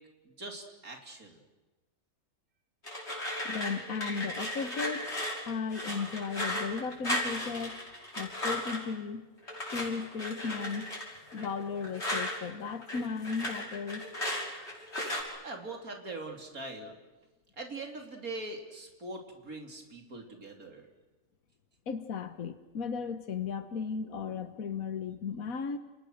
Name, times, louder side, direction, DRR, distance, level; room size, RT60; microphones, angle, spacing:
voice 1, 0.2-1.4 15.4-17.0 17.6-20.8, right 2 dB, 80° right, 3 dB, 3.9 m, -42 dB
sound 1, 2.8-8.9 9.5-12.4 12.7-15.2, left 1 dB, 50° left, 6.6 m, -35 dB
voice 2, 3.4-5.1 5.5-7.8 8.2-9.2 9.7-10.9 11.3-14.0 21.9-25.8, left 5 dB, 75° left, 10 dB, 1.7 m, -35 dB
30.0 x 29.5 x 6.6 m, 1.2 s
omnidirectional pair, 1.5 m